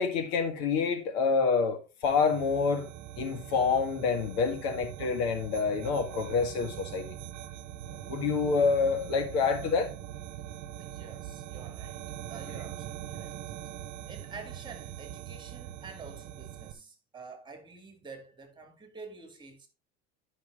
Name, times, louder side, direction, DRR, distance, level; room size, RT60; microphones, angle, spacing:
voice 1, 0.0-2.9 3.2-7.1 8.1-9.9 12.5-12.6, left 5 dB, 85° left, 2.0 m, -27 dB
sound 1, 2.0-16.7, right 12 dB, 55° right, 1.1 m, -42 dB
voice 2, 10.8-12.0 12.3-13.4 14.1-19.7, right 4 dB, 15° right, 2.2 m, -48 dB
11.5 x 5.7 x 3.7 m
supercardioid pair, 135°, 31 cm